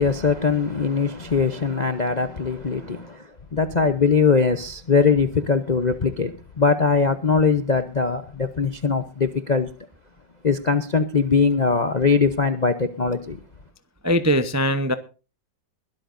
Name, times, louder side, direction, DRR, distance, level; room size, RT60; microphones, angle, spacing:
voice 1, 0.0-9.7 10.4-13.4, left 5 dB, 45° left, 0.5 m, -21 dB
voice 2, 14.0-14.9, equal, 20° right, 0.4 m, -21 dB
22.0 x 13.0 x 2.6 m
omnidirectional pair, 2.0 m